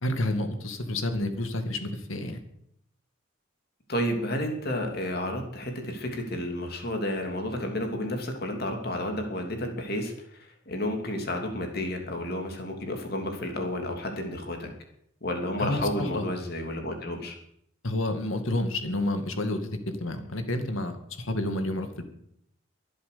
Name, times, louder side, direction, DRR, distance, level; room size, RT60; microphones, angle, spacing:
voice 1, 0.0-2.4 15.6-16.2 17.8-22.0, left 1 dB, 85° left, 7 dB, 2.2 m, -30 dB
voice 2, 3.9-10.1 10.7-14.7 15.2-17.3, left 1 dB, 50° left, 3 dB, 3.0 m, -31 dB
23.5 x 7.9 x 6.9 m, 0.74 s
head